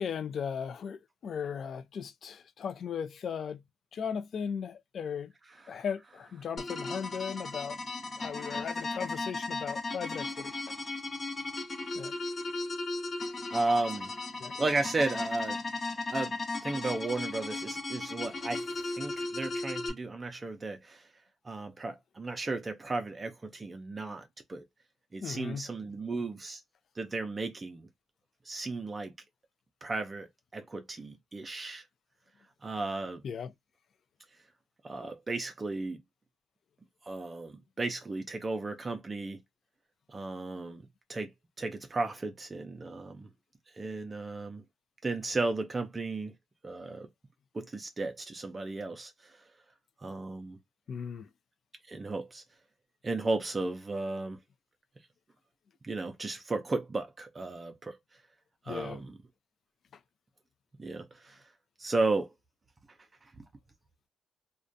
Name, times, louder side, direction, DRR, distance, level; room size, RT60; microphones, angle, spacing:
voice 1, 0.0-3.6 3.9-5.3 5.7-7.8 8.2-10.7 11.9-12.1 14.4-14.5 25.2-25.7 33.2-33.5 50.9-51.3 58.7-59.0, left 7 dB, 55° left, 0.3 m, -37 dB
sound 1, 6.6-19.9, left 3 dB, 35° left, 0.7 m, -36 dB
voice 2, 13.5-14.1 14.6-15.6 16.1-16.4 16.6-21.0 21.4-24.2 24.5-24.6 25.1-26.6 27.0-27.9 28.5-29.1 29.8-30.3 30.5-31.8 32.6-33.2 34.8-36.0 37.1-39.4 40.1-40.8 41.1-41.3 41.6-43.3 43.8-44.6 45.0-46.3 46.6-47.1 47.5-49.1 50.0-50.6 51.9-52.4 53.0-54.4 55.8-58.0 58.7-59.1 60.8-61.4 61.8-62.3, right 3 dB, 30° right, 0.4 m, -34 dB
2.4 x 2.1 x 2.5 m
cardioid pair, 90°, 0 cm